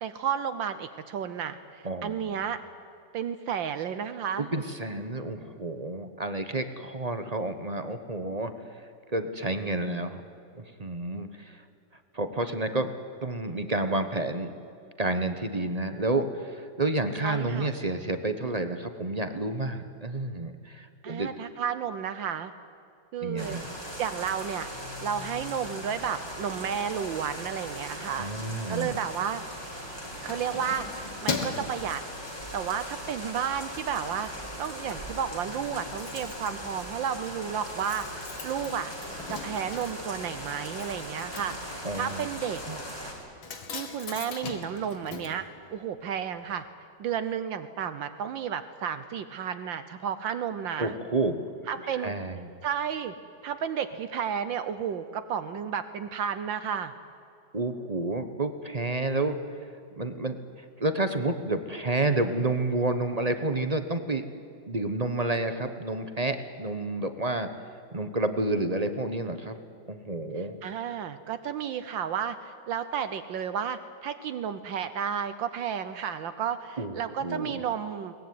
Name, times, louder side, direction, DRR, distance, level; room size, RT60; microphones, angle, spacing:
voice 1, 0.0-2.6 3.1-4.6 17.2-17.7 21.0-22.5 23.1-23.6 24.0-24.7 25.0-28.3 28.7-29.5 30.2-32.0 32.5-38.9 39.3-42.6 43.7-46.6 47.0-51.0 51.7-52.1 52.6-53.1 53.4-56.9 70.3-78.1, right 8 dB, 70° right, 10 dB, 1.5 m, -32 dB
voice 2, 1.8-2.4 4.4-10.2 10.5-11.6 12.1-12.9 13.2-14.5 15.0-21.3 23.2-23.7 28.2-29.0 41.8-42.3 42.7-42.8 50.8-51.5 51.9-52.5 57.5-59.4 60.0-60.4 60.8-64.3 64.7-67.5 67.9-69.6 69.9-70.6 76.8-77.6, right 2 dB, 30° right, 8 dB, 0.8 m, -30 dB
sound 1, 23.4-43.1, equal, 10° left, 4.6 m, -39 dB
Keys jangling, 29.7-32.8 33.2-33.4 33.8-34.5 34.8-34.9 35.1-35.2 35.4-46.2 46.5-46.6, left 5 dB, 80° left, 2.6 m, -40 dB
22.5 x 19.5 x 9.5 m, 2.5 s
omnidirectional pair, 2.2 m